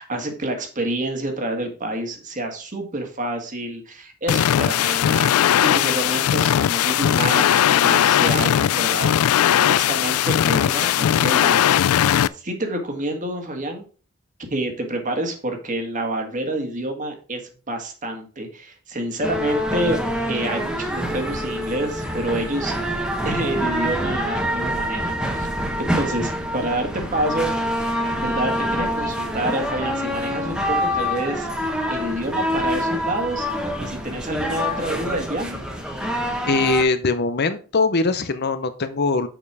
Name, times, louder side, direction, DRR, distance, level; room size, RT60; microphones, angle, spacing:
voice 1, 0.0-5.3 5.7-11.6 12.3-13.8 14.5-17.4 17.7-20.0 20.3-25.5 25.8-27.5 28.2-33.5 33.8-35.6, right 1 dB, 35° right, 4 dB, 1.6 m, -28 dB
sound 1, 4.3-12.3, left 10 dB, 80° left, 0.3 m, -18 dB
sound 2, 19.2-36.8, equal, 5° right, 1.1 m, -26 dB
voice 2, 36.4-39.3, left 3 dB, 50° left, 11 dB, 0.6 m, -21 dB
7.1 x 5.2 x 4.8 m, 0.38 s
head